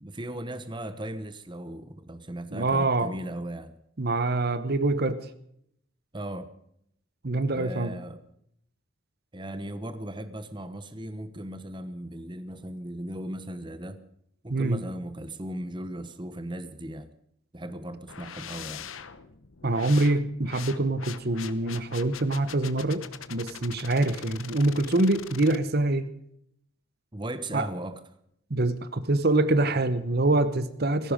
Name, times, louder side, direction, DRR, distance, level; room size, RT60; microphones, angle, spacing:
voice 1, 0.0-3.7 6.1-6.5 7.5-8.2 9.3-14.0 14.4-17.1 17.5-18.9 27.1-28.0, right 1 dB, 20° right, 1.1 m, -37 dB
voice 2, 2.5-3.1 4.0-5.2 7.2-7.9 14.5-14.8 19.6-23.0 23.3-26.1 27.5-27.7 28.5-31.1, right 2 dB, 50° right, 1.0 m, -25 dB
sound 1, 18.1-25.6, left 8 dB, 70° left, 1.1 m, -43 dB
18.0 x 15.5 x 5.2 m
head